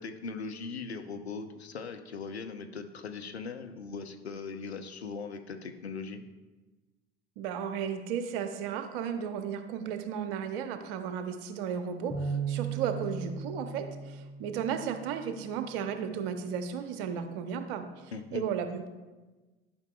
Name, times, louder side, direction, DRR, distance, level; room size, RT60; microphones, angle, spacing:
voice 1, 0.0-6.2 18.1-18.4, left 4 dB, 90° left, 7 dB, 0.6 m, -39 dB
voice 2, 7.4-17.8 18.3-18.9, right 7 dB, 60° right, 8 dB, 0.8 m, -34 dB
Bass guitar, 12.1-16.5 17.2-18.3, right 5 dB, 5° right, 2.3 m, -39 dB
11.5 x 5.6 x 2.3 m, 1.2 s
figure-of-eight pair, 70°, 31 cm